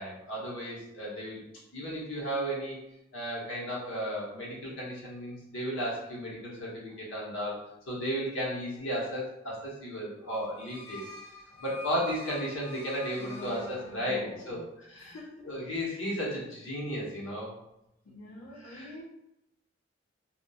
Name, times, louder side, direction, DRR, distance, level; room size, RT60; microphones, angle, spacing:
voice 1, 0.0-1.4 1.7-2.8 3.1-7.6 7.9-11.0 11.6-14.6 14.9-15.2 15.5-17.5 18.6-18.9, equal, 90° left, -5 dB, 0.9 m, -34 dB
voice 2, 6.9-7.6 11.5-11.6 13.2-14.6 15.0-15.6 18.0-19.0, left 1 dB, 70° left, -5 dB, 0.5 m, -47 dB
sound 1, 10.2-14.4, left 3 dB, 10° left, 1.1 m, -47 dB
2.8 x 2.3 x 2.2 m, 0.87 s
head